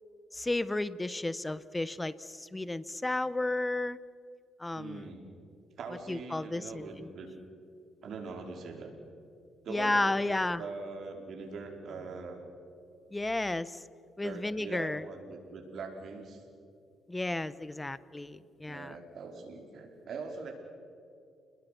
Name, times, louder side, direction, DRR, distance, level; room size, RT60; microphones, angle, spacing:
voice 1, 0.3-4.0 4.6-5.1 6.1-7.1 9.7-10.6 13.1-13.8 14.2-15.0 17.1-19.0, left 2 dB, 15° left, 17 dB, 0.9 m, -32 dB
voice 2, 4.7-5.3 5.8-7.3 8.0-8.9 9.6-12.4 14.2-16.4 18.7-20.5, right 4 dB, 65° right, 2 dB, 4.7 m, -42 dB
30.0 x 21.0 x 6.0 m, 2.5 s
cardioid pair, 90°, 0 cm